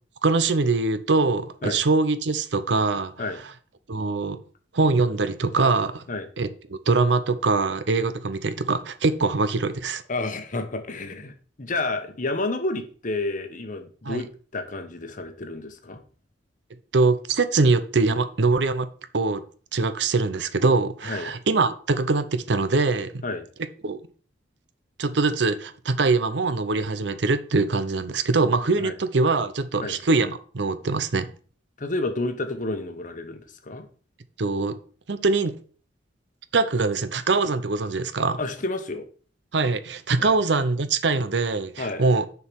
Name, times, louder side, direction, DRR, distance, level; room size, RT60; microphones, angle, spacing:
voice 1, 0.2-3.1 3.9-4.4 4.7-6.0 6.4-10.0 14.0-14.2 16.9-18.9 19.1-19.4 19.7-23.2 23.8-24.0 25.0-31.3 34.4-34.8 35.1-35.6 36.5-38.4 39.5-42.3, right 3 dB, 65° right, 0.7 m, -23 dB
voice 2, 10.1-11.3 11.6-16.0 21.0-21.3 23.2-23.4 28.8-28.9 29.8-30.0 31.8-33.9 38.4-39.1 40.2-40.3 41.8-42.0, left 2 dB, 45° left, 1.0 m, -30 dB
6.7 x 4.7 x 6.2 m
head